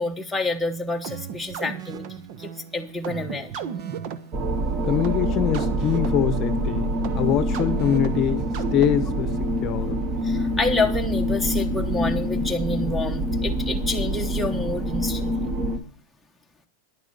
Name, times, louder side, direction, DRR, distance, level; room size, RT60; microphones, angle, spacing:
voice 1, 0.0-3.5 10.2-15.4, left 2 dB, 5° left, 1 dB, 1.0 m, -28 dB
sound 1, 1.0-9.3, right 7 dB, 50° right, 1.1 m, -36 dB
sound 2, 4.3-15.8, equal, 25° right, 1.7 m, -26 dB
voice 2, 4.8-8.5 8.7-10.0, left 9 dB, 35° left, 12 dB, 0.9 m, -24 dB
11.0 x 9.1 x 6.5 m, 0.42 s
supercardioid pair, 150°, 0 cm